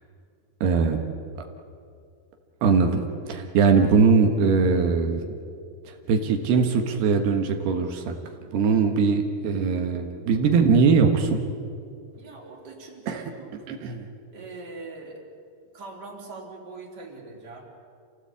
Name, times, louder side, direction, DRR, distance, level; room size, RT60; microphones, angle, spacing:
voice 1, 0.6-1.0 2.6-5.2 5.9-8.2 8.5-11.4 13.1-13.3 13.7-14.1, right 5 dB, 80° right, 4 dB, 3.4 m, -21 dB
voice 2, 12.2-13.5 14.3-15.2 15.7-17.6, right 3 dB, 25° right, -2 dB, 3.8 m, -42 dB
29.0 x 16.5 x 8.4 m, 2.4 s
omnidirectional pair, 4.6 m